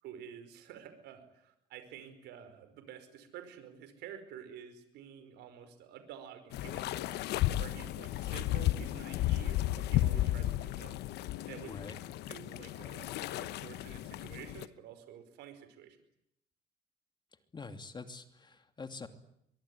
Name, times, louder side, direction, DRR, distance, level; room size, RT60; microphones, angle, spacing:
voice 1, 0.0-7.2 7.6-10.9 11.2-11.7 12.3-13.1 13.4-16.0, right 9 dB, 85° right, 9 dB, 5.2 m, -50 dB
sound 1, 6.5-14.7, left 14 dB, 80° left, 1.1 m, -34 dB
voice 2, 17.5-19.1, left 4 dB, 25° left, 8 dB, 2.9 m, -45 dB
23.5 x 23.0 x 10.0 m, 0.75 s
cardioid pair, 110°, 17 cm